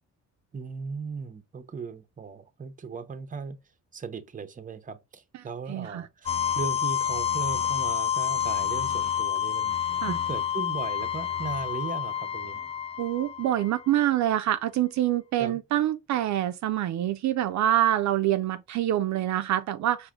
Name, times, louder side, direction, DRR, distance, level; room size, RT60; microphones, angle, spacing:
voice 1, 0.5-3.6 3.9-12.6 15.4-15.6, right 5 dB, 25° right, 0.7 m, -37 dB
voice 2, 5.3-6.1 10.0-10.1 13.0-20.1, right 12 dB, 70° right, 0.5 m, -26 dB
sound 1, 6.3-14.0, left 9 dB, 20° left, 0.3 m, -29 dB
4.8 x 2.6 x 3.6 m
cardioid pair, 90°, 30 cm